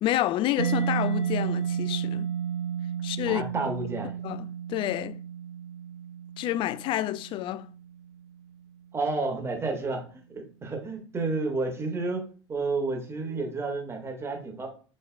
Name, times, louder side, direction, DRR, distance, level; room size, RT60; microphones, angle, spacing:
voice 1, 0.0-2.3 3.0-3.4 4.2-5.2 6.4-7.7, left 13 dB, 35° left, 0.4 m, -29 dB
Mallet percussion, 0.6-8.1, right 8 dB, 80° right, 0.6 m, -32 dB
voice 2, 3.3-4.2 8.9-10.0 10.3-14.7, right 3 dB, 15° right, 2.0 m, -31 dB
8.1 x 5.3 x 2.4 m
figure-of-eight pair, 75°, 15 cm